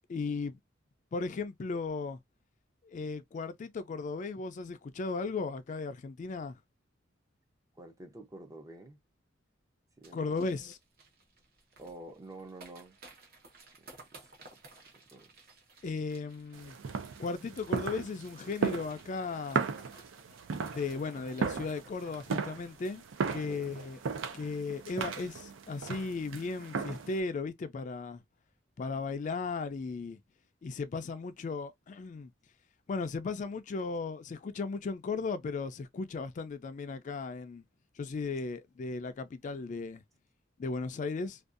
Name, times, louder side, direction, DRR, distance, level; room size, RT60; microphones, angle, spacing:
voice 1, 0.1-0.6 1.1-2.2 2.8-6.6 10.1-10.8 15.8-16.8 17.2-19.6 20.7-23.0 23.3-24.0 24.3-28.2 28.8-30.2 30.6-32.3 32.9-37.6 38.0-40.0 40.6-41.4, left 4 dB, 40° left, 0.3 m, -36 dB
voice 2, 7.8-9.0 10.0-10.5 11.8-13.0 14.1-14.3 15.1-15.3 23.3-23.8, right 2 dB, 15° right, 0.5 m, -49 dB
sound 1, 10.0-23.8 24.1-24.2 24.5-24.8 25.1-25.3, right 2 dB, 55° right, 0.8 m, -57 dB
sound 2, 16.5-27.2, right 5 dB, 85° right, 0.5 m, -36 dB
2.6 x 2.3 x 2.4 m
head